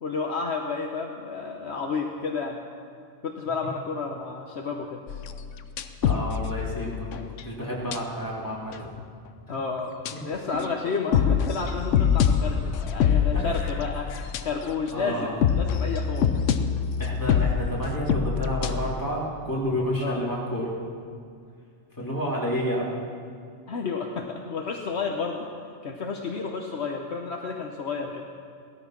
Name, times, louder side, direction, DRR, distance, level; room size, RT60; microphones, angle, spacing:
voice 1, 0.0-2.6 3.2-5.0 9.5-9.9 10.2-16.3 20.0-20.2 23.7-25.5 25.8-28.2, left 5 dB, 65° left, 2 dB, 1.2 m, -31 dB
sound 1, 5.1-7.5 7.9-8.0 8.4-8.5 8.7-9.0 10.0-14.9 15.1-18.9, left 7 dB, 85° left, 1.1 m, -25 dB
voice 2, 6.0-8.8 9.5-9.6 10.1-10.2 13.3-13.7 14.9-15.4 17.0-20.7 22.0-22.9, equal, 15° left, -5 dB, 3.2 m, -30 dB
17.5 x 13.0 x 5.9 m, 2.2 s
omnidirectional pair, 1.2 m